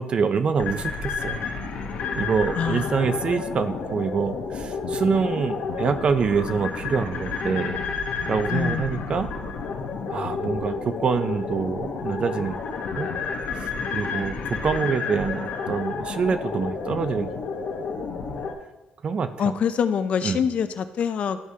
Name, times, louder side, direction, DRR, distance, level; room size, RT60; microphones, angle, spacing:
voice 1, 0.0-1.5 2.2-7.8 8.3-9.3 10.1-12.6 13.0-13.1 13.9-17.3 19.0-19.5 20.2-20.4, right 5 dB, 30° right, 10 dB, 0.4 m, -25 dB
sound 1, 0.6-18.5, left 5 dB, 60° left, 0.9 m, -30 dB
voice 2, 2.5-3.2 8.5-9.2 19.4-21.4, left 7 dB, 40° left, 11 dB, 0.4 m, -26 dB
12.0 x 4.7 x 2.8 m, 1.0 s
cardioid pair, 180°, 3 cm